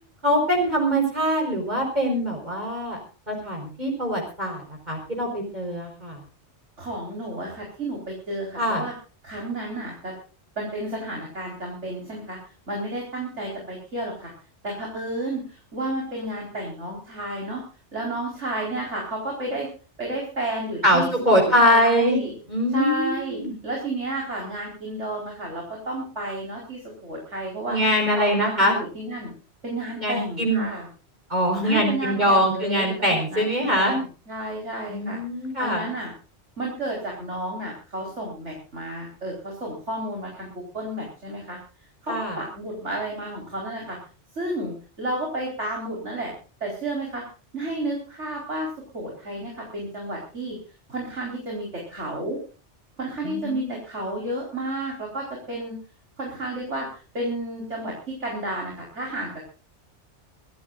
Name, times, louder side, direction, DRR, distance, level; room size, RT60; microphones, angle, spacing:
voice 1, 0.2-3.0 3.3-6.2 8.6-8.8 20.8-22.2 22.5-23.5 27.7-28.8 30.0-30.7 31.3-34.0 34.9-35.9 42.1-42.4 53.2-53.7, equal, 40° right, 0 dB, 5.0 m, -23 dB
voice 2, 6.8-8.9 9.2-10.1 10.6-12.4 12.7-14.3 14.6-15.4 15.7-17.6 17.9-19.7 20.0-21.1 21.4-22.3 22.7-27.8 28.2-29.3 29.6-30.9 31.6-35.2 35.6-36.1 36.6-40.5 40.7-41.6 42.0-44.0 44.4-46.3 46.6-47.2 47.5-48.7 48.9-50.6 50.9-52.4 53.0-55.8 56.2-56.9 57.1-59.3, right 1 dB, 80° right, -1 dB, 4.8 m, -31 dB
24.5 x 15.5 x 2.5 m, 0.37 s
omnidirectional pair, 1.2 m